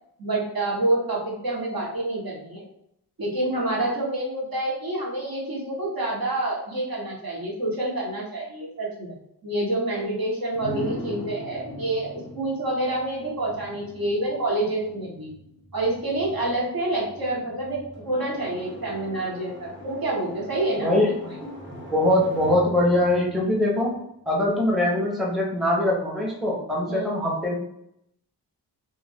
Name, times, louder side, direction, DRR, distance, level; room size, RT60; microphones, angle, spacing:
voice 1, 0.2-2.6 3.2-9.1 9.4-12.1 12.3-15.3 15.7-21.1 26.9-27.1, right 2 dB, 55° right, -4 dB, 1.0 m, -27 dB
sound 1, 10.5-24.4, left 1 dB, 30° right, 1.0 m, -41 dB
voice 2, 20.8-21.1 21.9-27.6, left 1 dB, ahead, -3 dB, 0.7 m, -22 dB
2.4 x 2.3 x 3.3 m, 0.78 s
wide cardioid pair, 80°, 41 cm